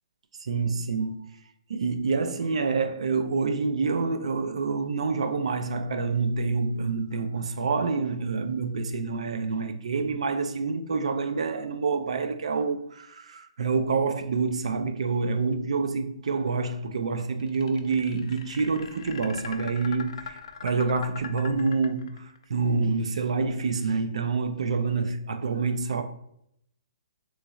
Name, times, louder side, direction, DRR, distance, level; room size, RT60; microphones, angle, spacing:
voice 1, 0.4-1.3 1.7-26.0, right 4 dB, 80° right, 0.4 m, -27 dB
sound 1, 17.4-22.4, left 7 dB, 55° left, 0.4 m, -40 dB
3.9 x 3.1 x 2.3 m
hypercardioid pair, 165°, 3 cm